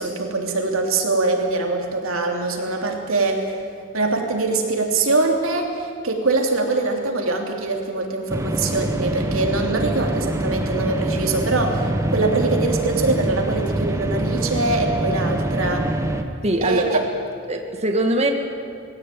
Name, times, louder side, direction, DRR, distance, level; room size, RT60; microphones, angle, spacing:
voice 1, 0.0-3.6 3.9-15.9 16.6-17.1, right 3 dB, 85° right, 2 dB, 3.1 m, -23 dB
sound 1, 8.3-16.2, right 1 dB, 15° right, 1.3 m, -24 dB
voice 2, 16.4-17.0 17.5-18.3, right 1 dB, 30° right, 4 dB, 1.9 m, -21 dB
20.0 x 16.5 x 9.2 m, 2.2 s
head